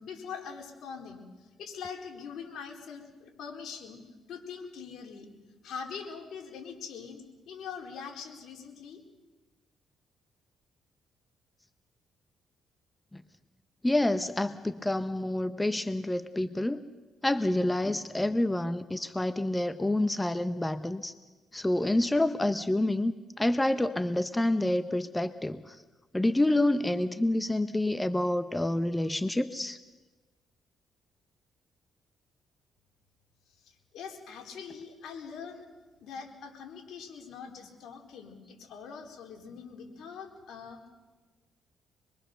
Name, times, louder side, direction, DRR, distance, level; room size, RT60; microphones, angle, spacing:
voice 1, 0.0-4.0 4.3-5.3 5.6-9.0 33.6-35.6 36.0-40.9, left 6 dB, 75° left, 2 dB, 4.3 m, -43 dB
voice 2, 13.8-16.8 17.2-21.1 21.5-25.8 26.1-29.8, left 1 dB, 10° left, 12 dB, 0.9 m, -28 dB
25.0 x 22.5 x 6.8 m, 1.2 s
cardioid pair, 90°, 0 cm